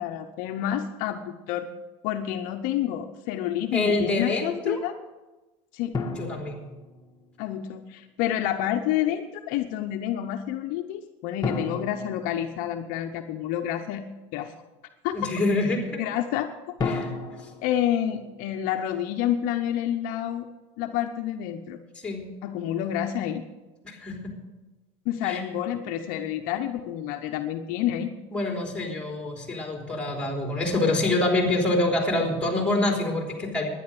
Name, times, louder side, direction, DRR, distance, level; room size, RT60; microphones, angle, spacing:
voice 1, 0.0-1.7 2.0-5.0 5.7-6.0 7.4-14.0 14.3-14.5 15.0-15.3 16.0-16.5 17.6-20.5 20.8-21.8 22.4-23.5 25.1-28.1, left 11 dB, 60° left, 5 dB, 0.9 m, -29 dB
voice 2, 3.7-4.8 6.1-6.6 15.1-16.0 16.8-17.1 17.4-17.5 22.0-22.3 23.8-24.4 25.2-25.4 28.3-33.7, left 2 dB, 5° left, 1 dB, 3.3 m, -26 dB
sound 1, 5.9-7.6 11.4-13.3 16.8-19.1, left 3 dB, 25° left, 1.5 m, -34 dB
11.5 x 10.0 x 7.8 m, 1.1 s
supercardioid pair, 130°, 16 cm